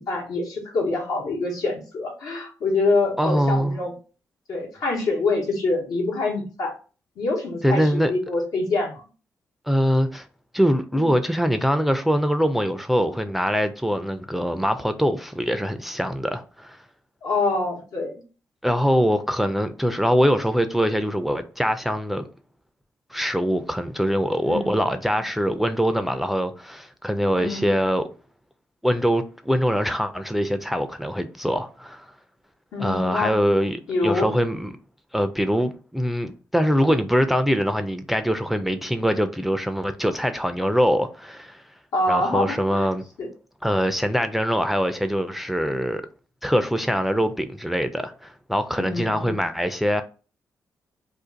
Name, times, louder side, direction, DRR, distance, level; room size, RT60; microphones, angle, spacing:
voice 1, 0.0-3.9 4.5-6.7 7.2-9.0 11.0-11.1 17.2-18.1 24.4-24.8 27.4-27.7 32.7-33.3 33.9-34.3 41.9-42.9 43.2-43.3 48.8-49.4, left 2 dB, 80° left, 1.1 m, -25 dB
voice 2, 3.2-3.8 7.6-8.1 9.7-10.3 10.5-16.8 18.6-22.3 23.1-28.0 28.8-32.1 32.8-34.7 35.1-41.6 42.1-43.0 43.6-46.0 46.4-50.0, equal, 5° right, 0.4 m, -23 dB
2.5 x 2.4 x 3.8 m
cardioid pair, 75°, 6 cm